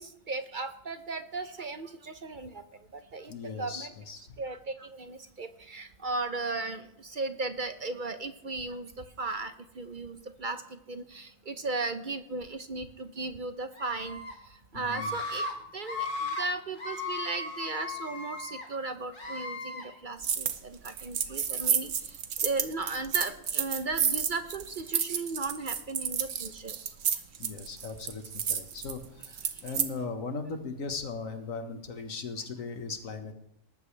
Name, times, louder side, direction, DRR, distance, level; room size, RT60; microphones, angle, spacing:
voice 1, 0.0-2.6 2.9-3.9 4.4-14.2 14.7-15.5 15.7-21.9 22.4-26.8, right 3 dB, 45° right, 9 dB, 0.8 m, -36 dB
voice 2, 3.3-4.4 14.7-15.1 27.4-33.3, left 4 dB, 75° left, 6 dB, 1.8 m, -38 dB
Screaming, 13.8-14.3 14.9-15.5 15.8-16.4 16.8-18.7 19.1-19.8, left 3 dB, 35° left, 2.4 m, -36 dB
sound 1, 20.2-20.6 20.9-29.9, right 8 dB, 65° right, 1.3 m, -30 dB
18.5 x 14.0 x 3.3 m, 0.83 s
omnidirectional pair, 1.4 m